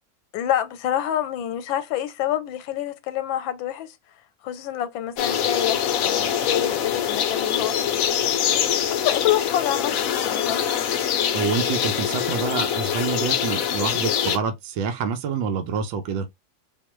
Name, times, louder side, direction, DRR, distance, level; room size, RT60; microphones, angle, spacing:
voice 1, 0.3-3.9 4.4-8.0 8.7-10.7, left 11 dB, 90° left, 1.3 m, -27 dB
sound 1, 5.2-14.4, left 9 dB, 70° left, 0.8 m, -24 dB
voice 2, 11.3-16.3, right 6 dB, 80° right, 1.4 m, -27 dB
3.7 x 2.9 x 3.0 m
omnidirectional pair, 2.1 m